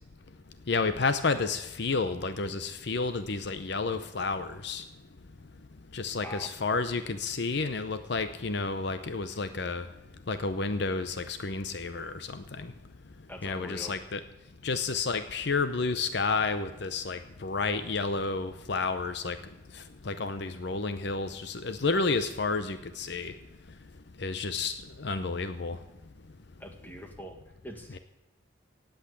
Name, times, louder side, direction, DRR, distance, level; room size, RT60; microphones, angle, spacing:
voice 1, 0.7-4.8 5.9-9.9 10.3-12.7 13.4-14.2 14.6-19.4 20.1-23.3 24.2-24.7 25.0-25.8, left 4 dB, 55° left, 11 dB, 0.7 m, -30 dB
voice 2, 6.2-6.5 13.3-13.9 26.6-28.0, equal, 10° left, 4 dB, 1.7 m, -43 dB
17.5 x 8.1 x 8.2 m, 1.0 s
head